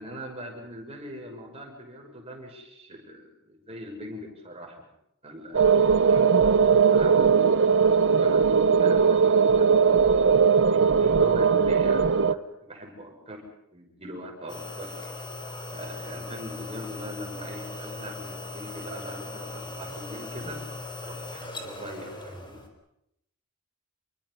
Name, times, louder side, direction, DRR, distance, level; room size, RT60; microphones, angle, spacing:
voice 1, 0.0-4.8 5.2-10.0 10.7-13.4 13.7-14.9 15.7-20.6 21.0-22.6, equal, 30° right, 2 dB, 6.4 m, -41 dB
sound 1, 5.5-12.3, right 6 dB, 55° right, 0.8 m, -19 dB
sound 2, 14.5-22.7, left 2 dB, 20° left, 3.9 m, -39 dB
27.5 x 23.5 x 5.6 m, 0.79 s
head